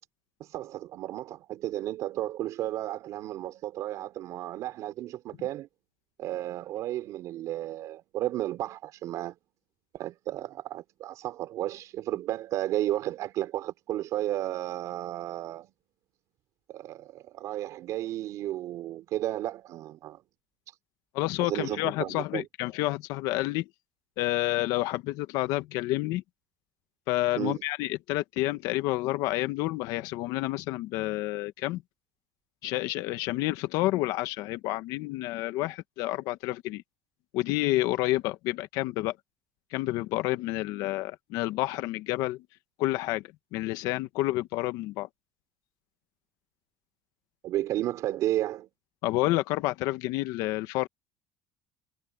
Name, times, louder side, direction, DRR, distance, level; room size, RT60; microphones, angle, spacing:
voice 1, 0.5-5.7 6.2-9.4 9.9-15.7 16.7-20.2 21.4-22.4 27.4-27.6 47.4-48.7, right 14 dB, 55° right, 5.2 m, -33 dB
voice 2, 21.1-23.7 24.2-26.2 27.1-31.8 32.6-36.8 37.3-39.2 39.7-42.4 42.8-43.2 43.5-45.1 49.0-50.9, left 18 dB, 70° left, 1.3 m, -29 dB
cardioid pair, 145°, 7 cm